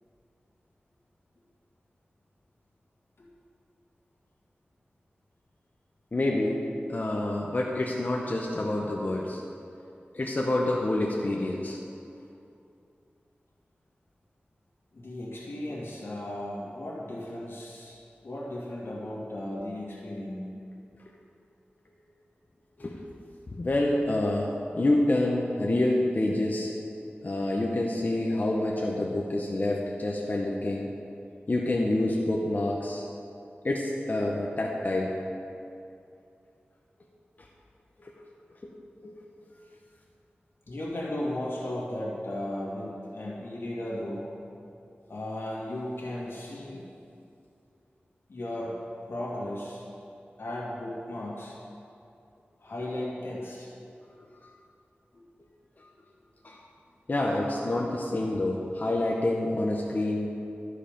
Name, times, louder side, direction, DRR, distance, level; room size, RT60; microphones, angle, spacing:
voice 1, 6.1-6.6 6.9-9.4 10.1-11.8 22.8-23.0 23.5-26.7 27.2-30.9 31.5-33.0 33.6-35.1 38.0-38.1 38.6-38.7 39.0-39.1 56.4-56.6 57.1-60.3, left 1 dB, 45° left, -2 dB, 0.8 m, -27 dB
voice 2, 14.9-18.0 18.2-20.4 40.7-44.3 45.1-46.8 48.3-48.7 49.1-49.8 50.4-51.6 52.6-53.7, left 1 dB, 85° left, -6 dB, 2.1 m, -35 dB
12.5 x 4.9 x 5.1 m, 2.6 s
wide cardioid pair, 70°, 4 cm